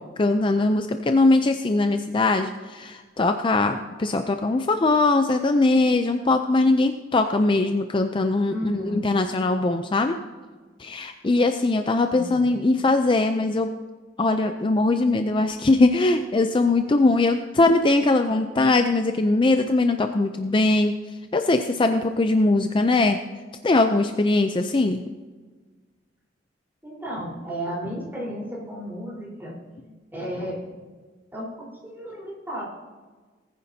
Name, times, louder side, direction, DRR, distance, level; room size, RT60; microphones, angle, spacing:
voice 1, 0.0-10.2 10.8-13.7 14.2-21.0 21.3-23.2 23.6-25.0, left 2 dB, 30° left, 7 dB, 0.4 m, -21 dB
voice 2, 8.5-9.0 12.1-12.6 26.8-29.6 30.1-30.6 31.3-31.5 31.8-32.6, equal, 10° right, -6 dB, 4.1 m, -33 dB
19.0 x 9.5 x 2.8 m, 1.4 s
head